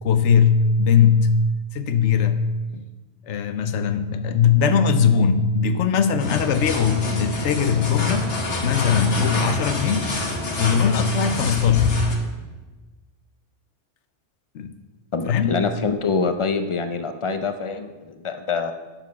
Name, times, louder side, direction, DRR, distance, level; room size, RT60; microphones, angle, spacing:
voice 1, 0.0-1.4 1.7-2.9 3.3-8.3 8.6-10.2 10.6-12.1 14.5-14.7 15.2-15.6, left 6 dB, 80° left, 10 dB, 1.0 m, -20 dB
sound 1, 6.2-12.2, left 2 dB, 60° left, 1.6 m, -27 dB
voice 2, 15.1-18.7, left 4 dB, 40° left, 8 dB, 0.4 m, -25 dB
8.3 x 7.0 x 5.8 m, 1.2 s
omnidirectional pair, 1.2 m